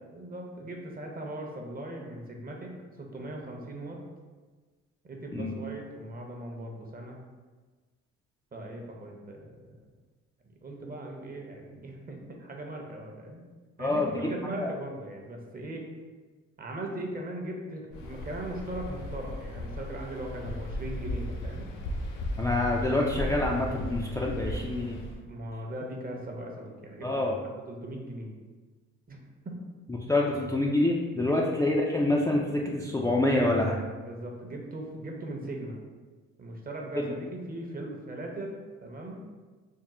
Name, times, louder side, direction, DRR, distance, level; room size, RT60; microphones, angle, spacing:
voice 1, 0.1-4.0 5.0-7.2 8.5-9.8 10.6-13.4 13.8-15.8 16.6-21.7 25.3-27.1 27.7-28.3 29.1-29.2 29.4-29.6 31.3-31.6 34.0-35.8 36.4-39.2, right 1 dB, 30° right, 0 dB, 0.7 m, -39 dB
voice 2, 13.8-14.3 14.5-14.7 22.4-25.0 27.0-27.4 30.1-33.8 36.9-37.0, left 2 dB, 10° left, -3 dB, 0.3 m, -26 dB
Waves surf, 17.9-25.2, left 1 dB, 90° left, 0.5 m, -36 dB
3.6 x 2.1 x 4.1 m, 1.3 s
cardioid pair, 90°, 30 cm